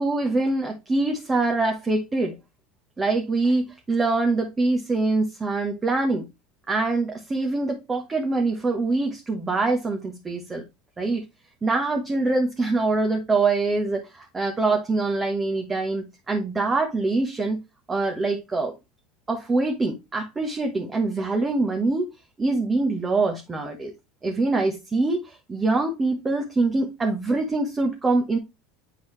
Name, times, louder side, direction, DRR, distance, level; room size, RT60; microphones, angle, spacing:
voice 1, 0.0-2.3 3.0-6.2 6.7-10.6 11.0-11.2 11.6-17.6 17.9-18.7 19.3-22.1 22.4-23.9 24.2-28.4, right 3 dB, 20° right, 1.3 m, -24 dB
8.1 x 3.9 x 3.3 m
hypercardioid pair, 80°, 0 cm